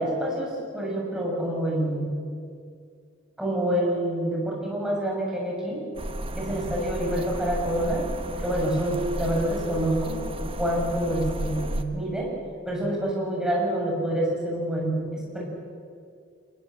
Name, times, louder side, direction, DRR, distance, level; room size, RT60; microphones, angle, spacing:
voice 1, 0.0-2.1 3.4-5.9 6.3-8.1 8.4-10.3 10.6-12.4 12.7-15.4, right 1 dB, 5° right, -3 dB, 6.6 m, -27 dB
sound 1, 6.0-11.8, right 1 dB, 25° right, 1.3 m, -33 dB
27.5 x 20.0 x 7.7 m, 2.2 s
head